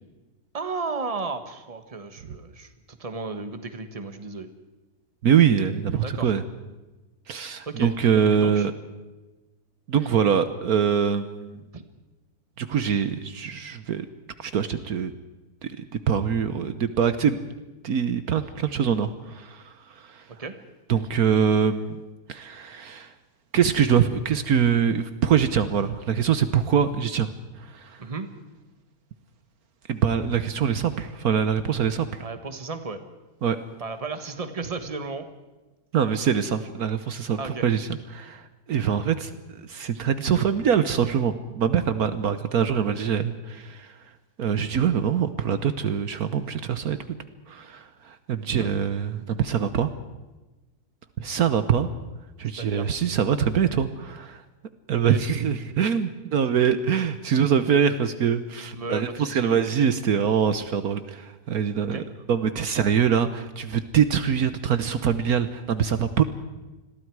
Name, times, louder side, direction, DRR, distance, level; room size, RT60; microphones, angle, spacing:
voice 1, 0.5-4.5 6.0-6.3 7.7-7.9 8.4-8.7 11.7-11.8 20.4-20.5 28.0-28.3 32.2-33.0 33.8-35.2 37.4-37.6 48.6-48.7 52.6-53.1 55.0-55.2 58.7-59.6 61.8-62.0, right 4 dB, 25° right, 8 dB, 1.5 m, -34 dB
voice 2, 5.2-6.4 7.3-8.7 9.9-11.6 12.6-14.0 14.4-15.1 16.1-17.4 17.8-19.6 20.9-22.0 22.3-23.1 23.5-27.3 27.8-27.9 29.9-32.2 33.4-33.6 35.9-38.4 38.7-39.3 39.7-43.9 44.4-47.0 47.5-49.9 51.2-51.9 52.4-54.4 54.9-66.2, right 7 dB, 70° right, 11 dB, 1.4 m, -23 dB
28.5 x 21.5 x 4.8 m, 1.1 s
omnidirectional pair, 1.7 m